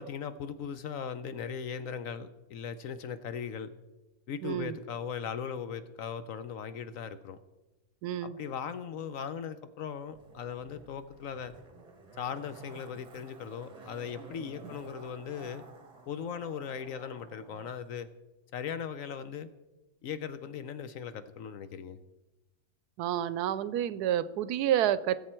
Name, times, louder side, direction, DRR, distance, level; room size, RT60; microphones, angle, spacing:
voice 1, 0.0-3.7 4.3-7.4 8.2-11.5 12.2-15.6 16.1-18.1 18.5-19.5 20.0-22.0, left 7 dB, 65° left, 12 dB, 0.9 m, -38 dB
voice 2, 4.4-4.8 8.0-8.4 23.0-25.2, right 11 dB, 80° right, 16 dB, 1.1 m, -29 dB
Zipper (clothing), 10.1-17.8 18.0-18.1, right 3 dB, 25° right, 1.0 m, -52 dB
17.5 x 7.4 x 4.4 m, 1.1 s
omnidirectional pair, 1.7 m